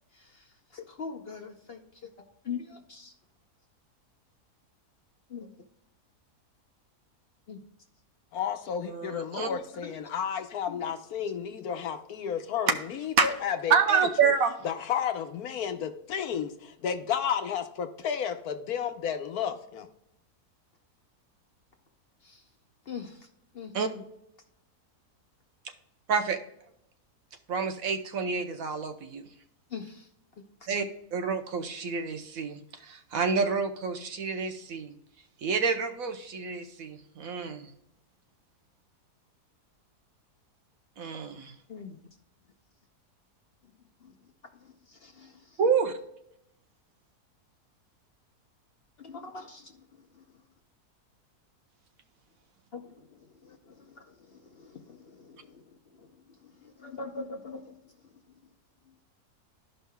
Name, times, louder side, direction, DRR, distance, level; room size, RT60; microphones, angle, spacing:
voice 1, 0.1-1.8 2.4-3.1 5.3-5.5 7.5-7.6 9.5-9.9 10.7-10.9 22.2-22.4 22.9-23.3 23.5-24.0 29.7-30.1 41.7-42.0 43.6-43.7 44.0-44.1 44.6-45.6 49.0-50.2 52.7-58.2 58.9-59.0, left 5 dB, 50° left, 4 dB, 0.8 m, -43 dB
voice 2, 8.3-14.3 14.6-19.9, left 8 dB, 70° left, 7 dB, 1.3 m, -32 dB
voice 3, 8.8-9.5 13.2-13.3 13.7-14.5 23.7-23.9 26.1-26.4 27.5-29.3 30.7-34.9 35.4-37.7 41.0-41.5 45.6-45.9, right 6 dB, 65° right, 7 dB, 1.1 m, -28 dB
13.5 x 5.5 x 2.2 m, 0.78 s
omnidirectional pair, 1.7 m